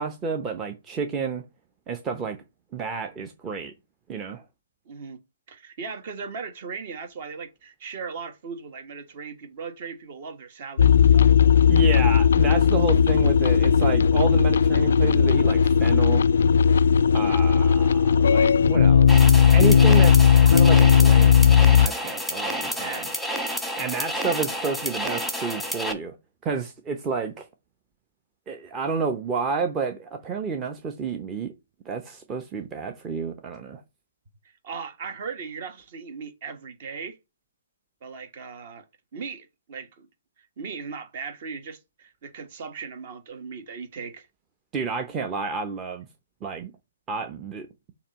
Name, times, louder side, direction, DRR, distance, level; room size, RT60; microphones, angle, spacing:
voice 1, 0.0-1.4 1.9-2.4 2.7-3.7 4.1-4.4 11.7-16.3 17.1-21.5 21.8-23.0 23.8-26.1 26.4-27.4 28.5-31.5 31.9-33.8 44.7-46.1 46.4-46.7 47.1-47.7, right 5 dB, 20° right, 0.8 m, -30 dB
voice 2, 4.8-5.2 5.5-11.3 22.8-23.2 34.4-37.2 38.0-38.8 39.1-40.1 40.4-44.3, right 5 dB, 45° right, 1.5 m, -38 dB
sound 1, 10.8-21.9, left 7 dB, 65° left, 0.3 m, -17 dB
sound 2, 19.1-25.9, equal, ahead, 1.2 m, -30 dB
7.0 x 3.0 x 5.3 m
figure-of-eight pair, 135°, 0 cm